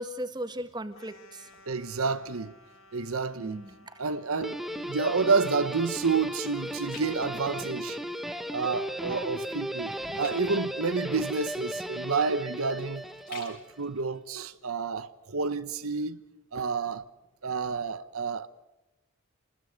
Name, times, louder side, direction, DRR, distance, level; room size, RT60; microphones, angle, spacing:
voice 1, 0.0-1.5 3.4-3.9, equal, 20° right, 1.7 m, -37 dB
sound 1, 0.9-6.7, left 2 dB, 85° left, 4.1 m, -56 dB
voice 2, 1.7-2.5 2.9-3.6 4.0-8.0 8.3-16.2 16.5-17.0 17.4-18.5, right 4 dB, 90° right, 1.0 m, -30 dB
Guitar, 4.4-13.7, equal, ahead, 0.9 m, -36 dB
sound 2, 6.2-8.3 8.7-9.0 9.4-15.3 15.8-15.9, left 6 dB, 45° left, 5.9 m, -52 dB
27.5 x 20.5 x 5.2 m
head